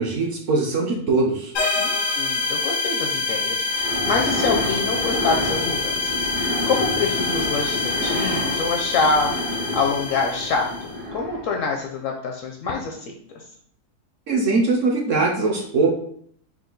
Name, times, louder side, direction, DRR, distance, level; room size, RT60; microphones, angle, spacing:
voice 1, 0.0-1.5 14.3-16.0, right 3 dB, 60° right, 0 dB, 0.9 m, -21 dB
sound 1, 1.5-10.9, left 4 dB, 90° left, 1.6 m, -26 dB
voice 2, 1.8-9.3 9.7-13.0, left 4 dB, 70° left, 2 dB, 0.8 m, -26 dB
sound 2, 3.6-11.7, left 1 dB, 80° right, 1.8 m, -29 dB
4.5 x 2.3 x 3.7 m, 0.63 s
omnidirectional pair, 1.7 m